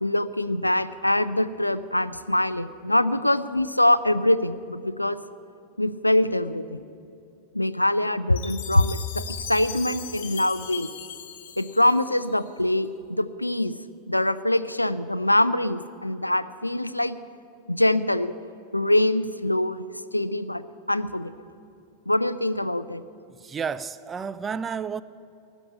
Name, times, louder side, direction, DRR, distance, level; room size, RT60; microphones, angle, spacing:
voice 1, 0.0-5.2 5.8-6.8 7.5-10.9 11.6-13.8 14.1-17.2 17.7-18.4 18.7-19.9 20.1-21.3 22.1-23.0, left 1 dB, 85° left, 0.4 m, -24 dB
Chime, 8.4-12.6, left 8 dB, 55° left, 1.1 m, -39 dB
voice 2, 23.4-25.0, right 6 dB, 20° right, 0.5 m, -31 dB
17.0 x 7.2 x 9.1 m
figure-of-eight pair, 90°, 0 cm